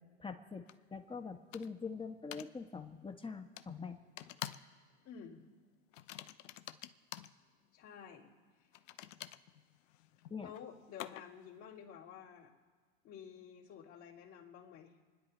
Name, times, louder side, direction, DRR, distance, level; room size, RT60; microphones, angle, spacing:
voice 1, 0.2-0.6 0.9-3.9 10.3-10.5, left 5 dB, 15° left, 6 dB, 1.5 m, -44 dB
sound 1, 0.7-0.8 1.5-1.9 2.3-2.5 3.6-3.7 4.2-4.7 5.0-5.3 5.9-7.3 8.7-11.5, left 13 dB, 75° left, 0.8 m, -48 dB
voice 2, 5.0-5.4 7.7-8.3 10.4-12.5 13.0-14.9, left 8 dB, 45° left, -8 dB, 2.9 m, -51 dB
28.5 x 10.0 x 4.4 m, 1.5 s
hypercardioid pair, 95°, 37 cm